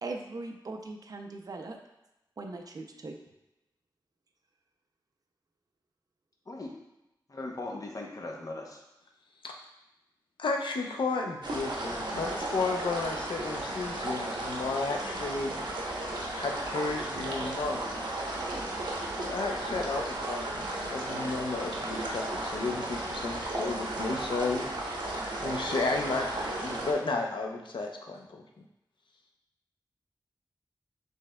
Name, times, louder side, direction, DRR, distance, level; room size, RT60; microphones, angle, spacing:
voice 1, 0.0-1.8 2.4-3.2, right 3 dB, 50° right, 3 dB, 0.5 m, -39 dB
voice 2, 7.3-8.8, left 2 dB, 45° left, 0 dB, 0.7 m, -39 dB
voice 3, 10.4-15.7 16.3-18.1 19.2-24.7 25.4-28.4, left 3 dB, 85° left, 2 dB, 0.5 m, -33 dB
sound 1, 11.4-26.9, right 1 dB, 65° right, 0.8 m, -34 dB
6.2 x 3.3 x 2.2 m, 0.93 s
wide cardioid pair, 95°, 8 cm